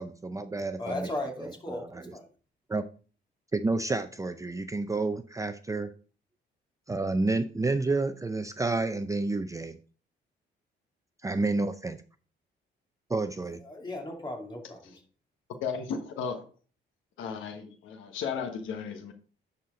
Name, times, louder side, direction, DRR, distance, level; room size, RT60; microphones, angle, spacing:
voice 1, 0.0-1.1 1.4-2.2 2.7-2.8 3.5-5.9 6.9-9.8 11.2-12.0 13.1-13.6, right 3 dB, 15° right, 0.5 m, -30 dB
voice 2, 0.8-2.2 13.7-14.8, left 1 dB, 20° left, 2.5 m, -36 dB
voice 3, 15.6-16.4 17.2-19.1, left 6 dB, 80° left, 1.3 m, -34 dB
10.5 x 4.4 x 3.7 m
cardioid pair, 90°, 20 cm